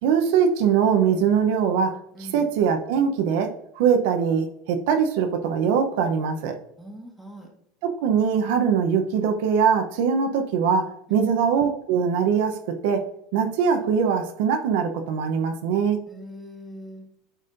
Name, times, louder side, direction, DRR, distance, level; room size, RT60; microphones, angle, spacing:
voice 1, 0.0-3.5 3.8-6.6 7.8-13.0 13.3-16.0, right 7 dB, 70° right, 5 dB, 0.7 m, -22 dB
voice 2, 2.1-2.5 6.8-7.5 11.1-11.4 16.1-17.1, equal, ahead, -1 dB, 1.4 m, -41 dB
8.8 x 4.1 x 2.6 m, 0.77 s
supercardioid pair, 155°, 0 cm